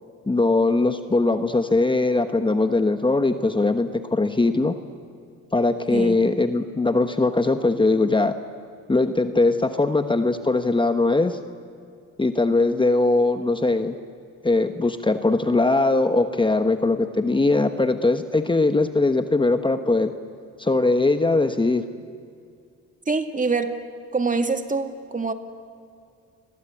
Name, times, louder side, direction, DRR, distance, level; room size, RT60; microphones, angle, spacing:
voice 1, 0.3-4.7 5.5-8.3 8.9-11.4 12.2-13.9 14.4-20.1 20.6-21.8, left 2 dB, 15° left, 8 dB, 1.2 m, -21 dB
voice 2, 5.9-6.2 23.1-23.8 24.1-25.3, right 4 dB, 25° right, 7 dB, 2.2 m, -25 dB
30.0 x 22.5 x 8.5 m, 2.3 s
cardioid pair, 90°, 30 cm